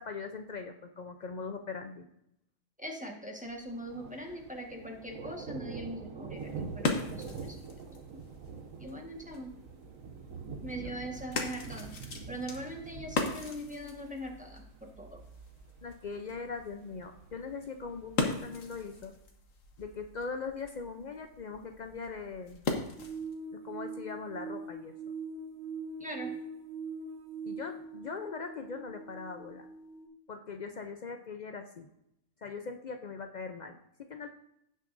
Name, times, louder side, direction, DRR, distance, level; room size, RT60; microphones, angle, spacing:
voice 1, 0.0-2.1 10.8-11.3 15.8-19.2 19.8-22.7 23.5-25.0 27.4-29.7 30.3-31.9 32.4-33.8 34.1-34.3, left 4 dB, 80° left, 6 dB, 0.4 m, -41 dB
voice 2, 2.8-7.6 8.8-9.5 10.6-11.9 12.3-15.2 26.0-26.3, equal, 5° right, 1 dB, 1.2 m, -41 dB
Thunder, 3.5-19.0, right 5 dB, 65° right, 1.1 m, -46 dB
sound 1, 6.2-23.4, left 3 dB, 60° left, 1.5 m, -40 dB
sound 2, 23.0-30.1, right 4 dB, 40° right, 1.6 m, -42 dB
16.5 x 6.4 x 2.6 m, 0.78 s
omnidirectional pair, 1.6 m